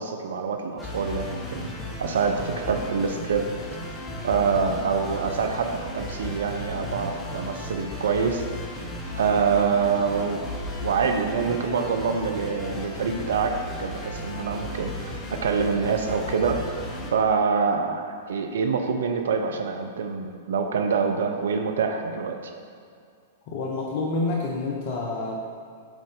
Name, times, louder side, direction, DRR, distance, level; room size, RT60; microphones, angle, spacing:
voice 1, 0.0-3.5 4.2-8.4 9.1-10.5 10.8-16.7 17.1-22.5, right 5 dB, 70° right, 5 dB, 0.6 m, -26 dB
sound 1, 0.8-17.1, left 1 dB, 15° left, 1.0 m, -35 dB
voice 2, 23.5-25.4, left 3 dB, 50° left, -2 dB, 0.8 m, -28 dB
8.1 x 3.8 x 3.8 m, 2.3 s
hypercardioid pair, 105°, 0 cm